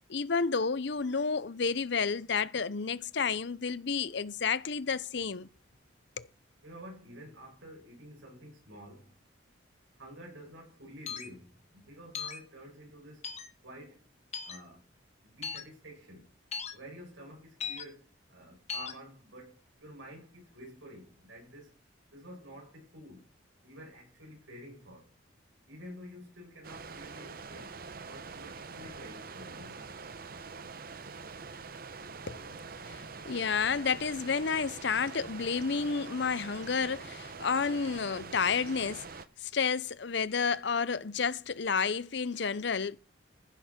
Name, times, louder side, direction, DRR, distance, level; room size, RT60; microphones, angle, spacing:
voice 1, 0.1-5.5 6.2-6.3 32.3-32.5 32.9-39.1 39.4-43.0, left 5 dB, 60° left, 0.7 m, -31 dB
voice 2, 6.6-9.1 10.0-13.3 13.6-14.0 14.4-14.8 15.2-16.2 16.7-21.7 22.1-23.2 23.6-25.1 25.7-27.8 28.1-29.7, equal, 80° right, 7.2 m, -50 dB
sound 1, 11.1-11.3 12.1-12.4 13.2-13.5 14.3-14.6 15.4-15.6 16.5-16.7 17.6-17.8 18.7-18.9, left 6 dB, 35° left, 1.4 m, -37 dB
sound 2, 26.6-39.3, right 4 dB, 50° right, 0.8 m, -45 dB
15.0 x 6.8 x 5.9 m
head